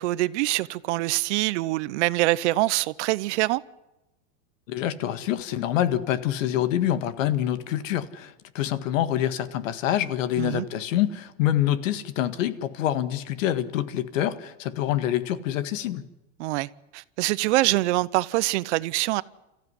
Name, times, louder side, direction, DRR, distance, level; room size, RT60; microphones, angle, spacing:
voice 1, 0.0-3.6 10.4-10.6 16.4-19.2, right 19 dB, 60° right, 0.8 m, -24 dB
voice 2, 4.7-16.0, left 11 dB, 75° left, 1.9 m, -26 dB
29.5 x 15.0 x 9.8 m
supercardioid pair, 155°, 40 cm